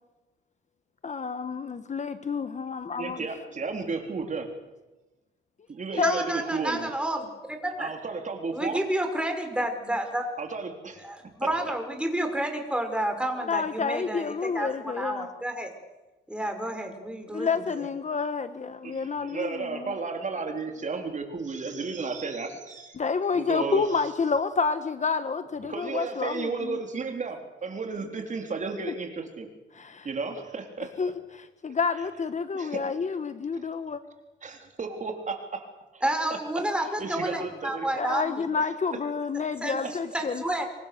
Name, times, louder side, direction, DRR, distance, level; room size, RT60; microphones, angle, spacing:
voice 1, 1.0-3.3 5.9-6.2 13.5-15.3 17.3-20.0 23.0-26.8 29.7-30.1 31.0-34.0 37.9-40.4, left 5 dB, 35° left, 11 dB, 1.5 m, -29 dB
voice 2, 3.0-4.5 5.7-6.9 7.8-8.8 10.4-11.0 18.8-23.0 23.3-23.9 25.6-29.5 30.0-30.9 32.5-32.8 34.4-35.7 35.9-36.0 36.5-36.6 37.0-37.9 38.6-38.7 39.8-39.9, right 4 dB, 40° right, 4 dB, 3.7 m, -33 dB
voice 3, 5.9-7.9 8.5-10.3 11.0-15.7 16.3-17.9 36.0-38.4 39.6-39.8 40.1-40.7, right 1 dB, 5° right, 4 dB, 5.8 m, -30 dB
27.0 x 23.5 x 6.8 m, 1.1 s
cardioid pair, 90°, 20 cm